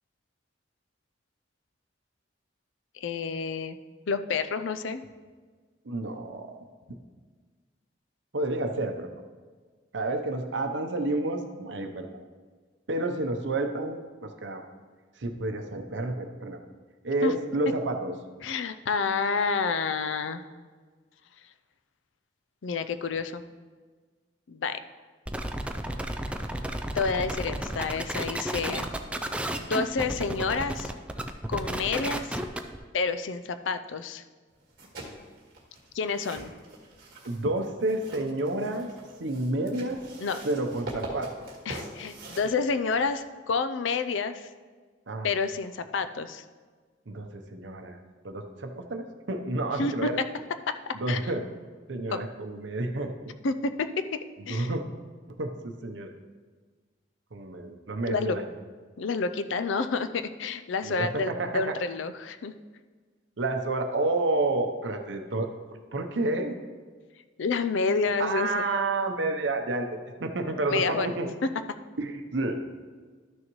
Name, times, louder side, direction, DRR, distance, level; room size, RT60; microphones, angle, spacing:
voice 1, 3.0-3.8 4.1-5.0 17.2-17.3 18.4-20.4 22.6-23.4 24.5-24.8 26.9-28.9 29.6-30.9 31.5-32.4 32.9-34.2 35.9-36.5 40.2-40.4 41.7-44.5 45.2-46.4 49.8-50.1 50.7-51.2 52.1-52.2 53.4-54.1 54.5-54.7 58.1-58.4 59.0-62.5 67.4-68.7 70.7-71.1, left 4 dB, 90° left, 10 dB, 0.5 m, -29 dB
voice 2, 5.8-6.6 8.3-9.1 9.9-12.2 12.9-14.6 15.2-16.6 17.0-18.1 37.3-38.9 39.2-40.0 40.4-41.3 45.1-45.3 47.1-48.0 48.2-50.2 50.9-51.5 51.9-53.1 54.5-54.8 55.4-56.1 57.3-58.5 60.8-61.7 63.4-66.6 68.2-71.3 72.0-72.6, right 2 dB, 75° right, 5 dB, 0.8 m, -30 dB
sound 1, 25.3-32.8, right 1 dB, 5° right, 0.4 m, -32 dB
sound 2, 34.6-43.2, right 1 dB, 50° right, 1.8 m, -44 dB
12.5 x 6.3 x 3.1 m, 1.5 s
head